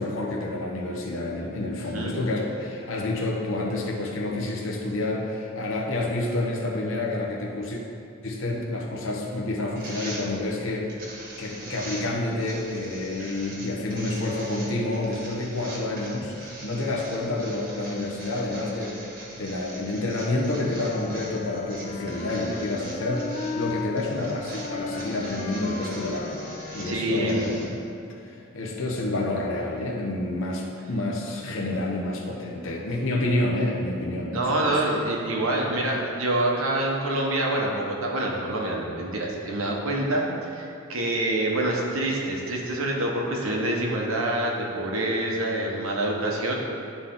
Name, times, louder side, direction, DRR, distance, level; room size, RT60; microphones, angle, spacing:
voice 1, 0.0-7.8 8.2-19.0 19.4-27.9 28.5-34.8, left 2 dB, 65° left, -2 dB, 1.0 m, -29 dB
voice 2, 1.7-2.2 13.2-13.3 26.8-27.4 34.3-46.5, right 1 dB, 75° right, -2 dB, 1.2 m, -26 dB
sound 1, 9.8-27.7, right 1 dB, 45° right, 1.5 m, -42 dB
Wind instrument woodwind instrument, 20.7-23.9 24.6-27.3, left 4 dB, 35° left, 0.3 m, -36 dB
11.5 x 4.1 x 3.8 m, 2.6 s
head